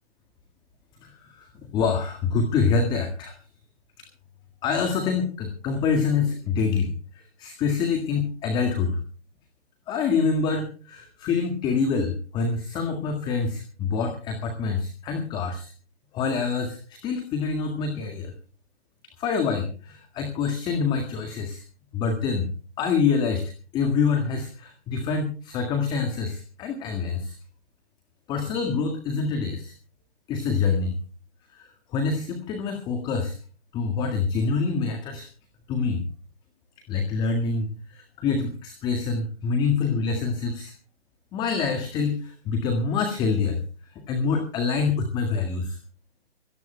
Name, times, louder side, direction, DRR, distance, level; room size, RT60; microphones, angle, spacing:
voice 1, 1.0-1.5 1.7-3.3 4.6-9.0 9.9-15.7 16.1-18.3 19.2-21.6 21.9-22.5 22.8-23.4 23.7-27.4 28.3-29.7 30.3-30.9 31.5-33.4 33.7-35.3 35.7-36.0 36.9-40.7 41.3-43.6 44.1-45.8, left 5 dB, 10° left, 5 dB, 1.7 m, -26 dB
25.0 x 17.5 x 2.2 m, 0.39 s
figure-of-eight pair, 145°, 34 cm